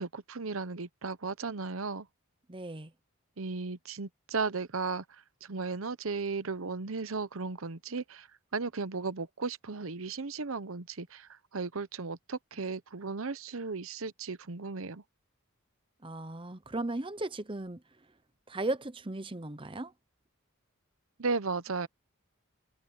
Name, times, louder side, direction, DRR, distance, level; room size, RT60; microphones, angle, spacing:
voice 1, 0.0-2.1 3.4-5.0 5.4-8.3 8.5-15.0 21.2-21.9, right 4 dB, 70° right, 0.9 m, -35 dB
voice 2, 2.5-2.9 16.0-17.8 18.5-19.9, right 2 dB, 25° right, 0.9 m, -36 dB
head